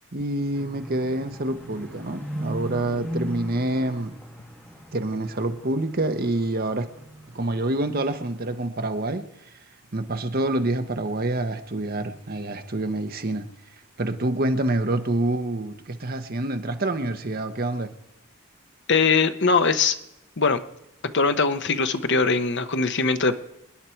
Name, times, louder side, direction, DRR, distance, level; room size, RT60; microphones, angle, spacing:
voice 1, 0.1-4.1 4.9-6.9 7.3-9.3 9.9-13.5 14.0-17.9, right 2 dB, 45° right, 1.0 m, -27 dB
sound 1, 0.5-7.6 8.0-8.5, equal, 5° left, 2.1 m, -37 dB
voice 2, 18.9-20.0 20.4-20.6 21.1-23.3, left 4 dB, 55° left, 0.9 m, -21 dB
27.5 x 10.0 x 4.5 m
head